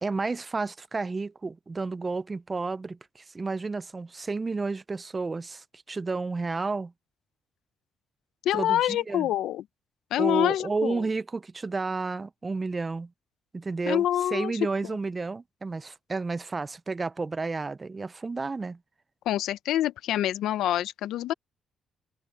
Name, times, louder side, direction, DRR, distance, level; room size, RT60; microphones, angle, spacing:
voice 1, 0.0-6.9 8.5-9.3 10.2-13.1 13.5-14.1 14.3-18.8, right 3 dB, 25° right, 0.3 m, -31 dB
voice 2, 8.4-9.6 10.1-11.0 13.9-14.5 19.3-21.3, left 12 dB, 85° left, 0.6 m, -26 dB
cardioid pair, 110°, 0 cm